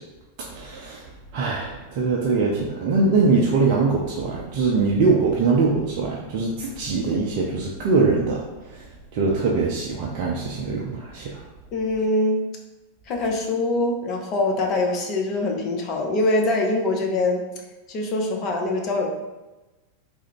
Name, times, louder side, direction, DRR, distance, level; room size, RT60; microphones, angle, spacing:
voice 1, 0.5-1.1 1.3-8.8 9.1-11.4, right 4 dB, 45° right, -3 dB, 0.5 m, -22 dB
voice 2, 11.7-12.4 13.1-17.4 17.9-19.1, left 2 dB, 35° left, 1 dB, 0.7 m, -23 dB
3.6 x 2.1 x 4.4 m, 1.1 s
figure-of-eight pair, 90°, 0 cm